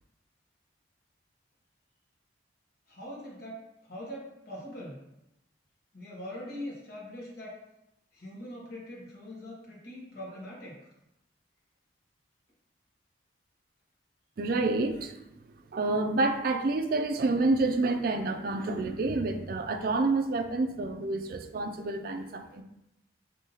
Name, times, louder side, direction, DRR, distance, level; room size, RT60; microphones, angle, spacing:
voice 1, 2.9-5.1 5.9-7.6 8.1-10.9, left 1 dB, 50° left, -4 dB, 1.1 m, -42 dB
voice 2, 14.4-15.3 15.7-22.6, right 3 dB, 50° right, 6 dB, 0.3 m, -28 dB
5.3 x 2.7 x 2.8 m, 0.85 s
head